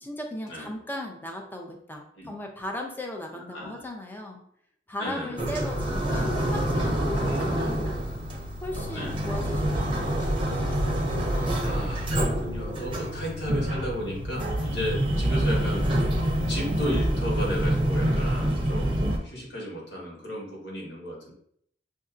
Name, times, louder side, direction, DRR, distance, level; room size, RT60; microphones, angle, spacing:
voice 1, 0.0-4.4 4.9-8.1 8.6-10.5, left 1 dB, 10° left, 1 dB, 0.6 m, -37 dB
voice 2, 3.3-3.8 5.0-5.5 7.2-7.9 8.9-9.2 11.6-15.8 16.5-21.3, equal, 80° left, -3 dB, 1.7 m, -34 dB
sound 1, 5.4-19.2, right 1 dB, 30° right, 0.7 m, -26 dB
6.4 x 2.7 x 2.4 m, 0.68 s
head